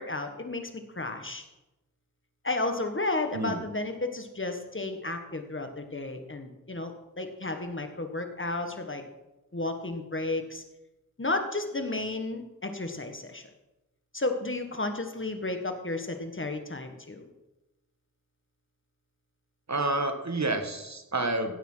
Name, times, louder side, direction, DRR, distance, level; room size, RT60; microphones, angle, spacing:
voice 1, 0.0-1.4 2.4-9.0 9.5-10.6 11.2-13.5 14.1-17.3, left 2 dB, 35° left, 6 dB, 1.6 m, -33 dB
voice 2, 19.7-21.6, right 2 dB, 55° right, 6 dB, 1.6 m, -29 dB
16.0 x 7.4 x 5.7 m, 0.99 s
wide cardioid pair, 60°, 34 cm